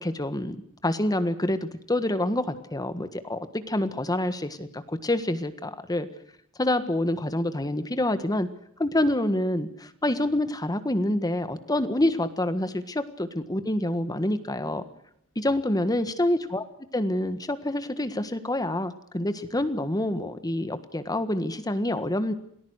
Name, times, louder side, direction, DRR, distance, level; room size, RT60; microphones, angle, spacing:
voice 1, 0.0-0.6 0.8-6.1 6.6-8.5 8.8-14.8 15.3-16.6 16.9-22.3, left 1 dB, 15° left, 11 dB, 1.6 m, -27 dB
28.0 x 19.0 x 6.5 m, 0.69 s
head